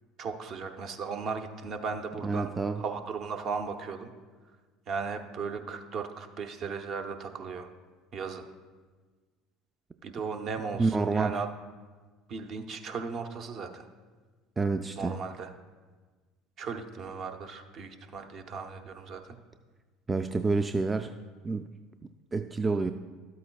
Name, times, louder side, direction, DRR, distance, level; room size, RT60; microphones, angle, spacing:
voice 1, 0.2-2.5 2.8-4.1 4.9-7.7 8.1-8.4 10.0-11.5 12.3-13.8 15.0-15.5 16.6-19.4, right 5 dB, 50° right, 6 dB, 0.7 m, -36 dB
voice 2, 2.2-2.8 10.8-11.3 14.6-15.2 20.1-21.1 21.4-21.7 22.3-22.9, right 3 dB, 20° right, 8 dB, 0.3 m, -28 dB
12.5 x 8.4 x 2.3 m, 1.4 s
hypercardioid pair, 70°, 0 cm